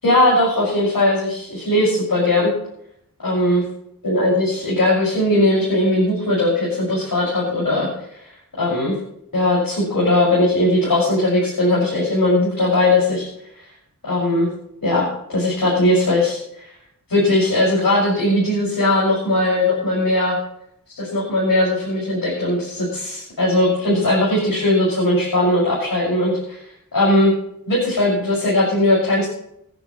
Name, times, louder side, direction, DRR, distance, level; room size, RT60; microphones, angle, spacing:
voice 1, 0.0-2.5 3.2-3.6 4.0-7.9 8.6-9.0 9.3-13.3 14.0-14.5 14.8-16.7 17.1-20.4 20.9-26.6 26.9-27.3 27.7-29.3, left 1 dB, 75° left, -6 dB, 6.3 m, -19 dB
26.5 x 10.0 x 3.2 m, 0.75 s
wide cardioid pair, 85°, 34 cm